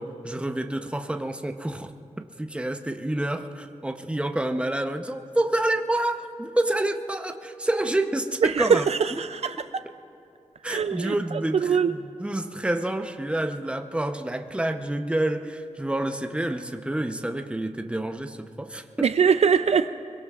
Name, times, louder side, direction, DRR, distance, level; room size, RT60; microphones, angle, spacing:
voice 1, 0.0-1.9 2.2-8.8 9.1-9.2 10.6-18.8, right 1 dB, 10° right, 6 dB, 0.8 m, -28 dB
voice 2, 8.4-9.8 10.6-11.9 19.0-19.9, right 6 dB, 55° right, 11 dB, 0.4 m, -23 dB
25.5 x 23.0 x 2.4 m, 2.8 s
wide cardioid pair, 110°, 13 cm